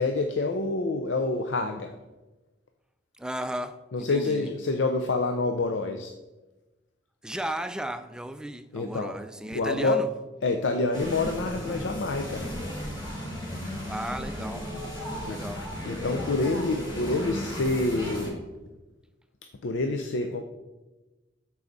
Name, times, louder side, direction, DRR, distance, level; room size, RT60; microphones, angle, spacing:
voice 1, 0.0-1.9 3.9-6.1 8.7-9.2 9.5-10.0 10.4-12.5 15.2-15.4 15.9-18.4 19.6-20.4, left 3 dB, 90° left, 0.6 m, -27 dB
voice 2, 3.2-4.5 7.2-10.1 13.9-14.7 15.1-15.7, right 1 dB, 5° right, 0.4 m, -35 dB
sound 1, 10.9-18.3, equal, 25° left, 2.7 m, -35 dB
12.0 x 4.8 x 4.0 m
head